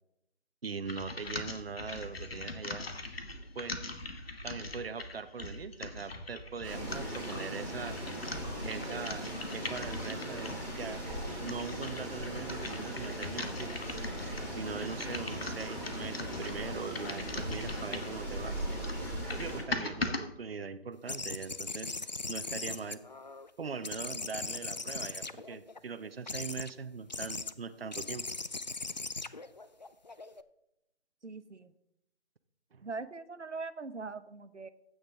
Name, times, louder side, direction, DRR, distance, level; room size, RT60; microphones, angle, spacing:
voice 1, 0.6-2.8 3.5-3.8 4.4-8.0 8.6-11.0 11.4-13.8 14.6-18.6 19.3-22.0 22.3-23.0 23.6-28.2 32.7-32.8, right 5 dB, 60° right, 11 dB, 0.8 m, -41 dB
sound 1, 0.8-10.7 11.2-18.2 18.6-20.2, left 2 dB, 60° left, 1.4 m, -41 dB
sound 2, 6.6-19.6, right 1 dB, 5° left, 2.7 m, -39 dB
sound 3, 21.1-23.5 23.8-25.8 26.3-26.7 27.1-27.5 27.9-30.4, left 3 dB, 40° left, 0.4 m, -39 dB
voice 2, 31.2-31.7 32.8-34.7, right 4 dB, 90° right, 12 dB, 0.8 m, -41 dB
13.0 x 8.9 x 3.7 m, 0.83 s
figure-of-eight pair, 155°, 34 cm